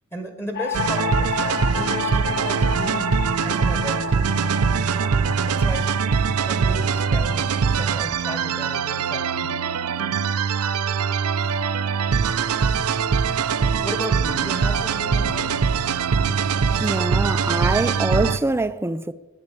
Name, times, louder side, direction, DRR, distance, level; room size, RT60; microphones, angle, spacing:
voice 1, 0.1-3.1 3.4-4.1 5.4-5.9 6.4-9.6 13.2-13.4 13.8-15.6, right 1 dB, 10° left, 1.3 m, -34 dB
sound 1, 0.5-10.9, left 9 dB, 45° left, 0.6 m, -33 dB
sound 2, 0.7-18.4, right 6 dB, 85° right, 0.6 m, -22 dB
voice 2, 16.8-19.1, right 2 dB, 10° right, 0.4 m, -24 dB
9.9 x 9.6 x 8.4 m
head